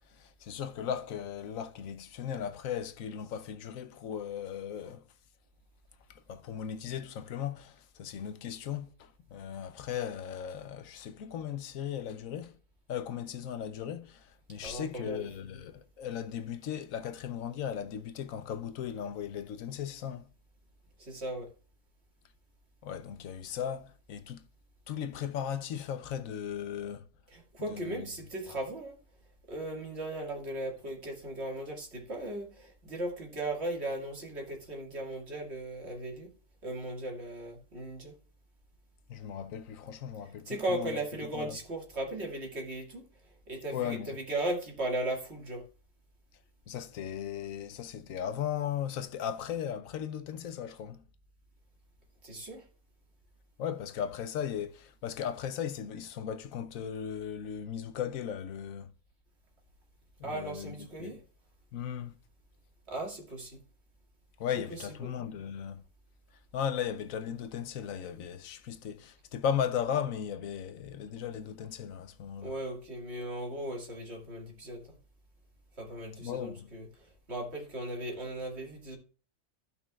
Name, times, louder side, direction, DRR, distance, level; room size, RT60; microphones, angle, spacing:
voice 1, 0.1-5.0 6.1-12.5 12.9-20.3 22.8-24.4 24.9-27.1 27.7-28.1 39.1-41.0 41.3-41.6 43.7-44.1 46.7-51.0 53.6-58.9 60.2-60.7 61.0-61.1 61.7-62.1 64.4-65.8 66.5-72.5 76.2-76.7, left 8 dB, 85° left, 1.1 m, -37 dB
voice 2, 14.6-15.3 21.0-21.5 27.3-28.9 29.5-36.3 36.6-38.2 40.2-45.7 52.2-52.7 60.2-61.2 62.9-63.6 64.7-65.1 72.4-75.0 75.8-79.0, right 1 dB, 55° right, 2.4 m, -37 dB
14.5 x 5.5 x 2.4 m
omnidirectional pair, 1.4 m